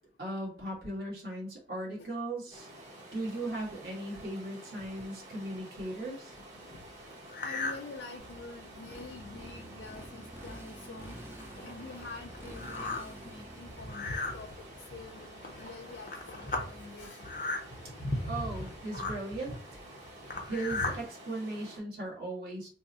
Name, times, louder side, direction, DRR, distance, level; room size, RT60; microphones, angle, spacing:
voice 1, 0.2-2.7 3.1-6.3 18.3-19.8 20.5-22.7, right 1 dB, 60° right, -4 dB, 1.5 m, -37 dB
Stream, 2.5-21.8, right 1 dB, 40° right, 1.2 m, -50 dB
sound 1, 7.3-7.8 8.3-8.4 9.0-9.1 9.4-9.7 10.3-10.4 10.8-21.0, left 2 dB, 45° left, 0.8 m, -38 dB
voice 2, 7.4-11.2 11.6-17.3 20.3-20.4, left 3 dB, 75° left, 2 dB, 0.4 m, -47 dB
Motorcycle, 8.2-16.8, equal, 10° right, 0.5 m, -49 dB
3.4 x 2.1 x 4.0 m, 0.40 s
head